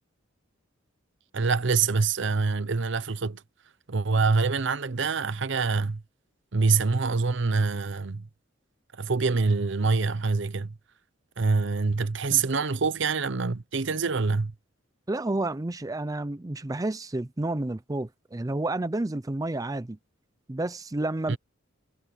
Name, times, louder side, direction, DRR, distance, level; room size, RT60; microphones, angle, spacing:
voice 1, 1.3-3.4 3.9-6.0 6.5-8.3 8.9-10.8 11.4-14.5 21.3-21.4, right 4 dB, 65° right, 0.8 m, -25 dB
voice 2, 15.1-20.0 20.5-21.4, right 2 dB, 20° right, 0.5 m, -30 dB
head